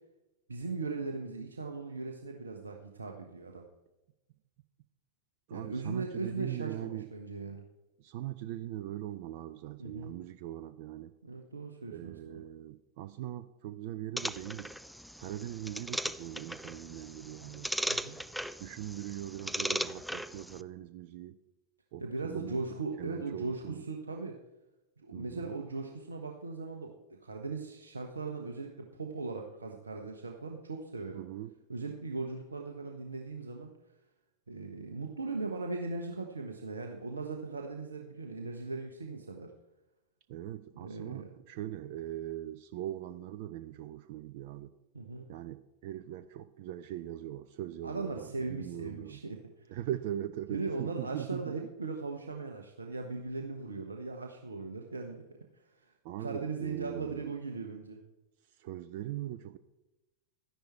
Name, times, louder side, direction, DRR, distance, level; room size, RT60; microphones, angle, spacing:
voice 1, 0.5-3.7 5.5-7.6 9.8-10.1 11.2-12.4 17.9-18.1 22.0-24.4 25.0-31.2 31.7-33.7 34.5-39.5 40.7-41.3 44.9-45.3 47.8-49.8 50.5-55.2 55.7-58.0, right 3 dB, 75° right, 3 dB, 1.1 m, -39 dB
voice 2, 5.5-7.1 8.0-11.1 11.9-14.7 15.2-17.7 18.6-21.4 21.9-23.8 25.1-25.6 31.1-31.5 40.3-44.7 45.3-49.2 49.7-51.6 56.0-57.3 58.5-59.6, right 13 dB, 50° right, 13 dB, 0.5 m, -41 dB
sound 1, 14.2-20.6, equal, ahead, 0.4 m, -38 dB
12.5 x 10.5 x 4.4 m, 0.98 s
figure-of-eight pair, 90°, 0 cm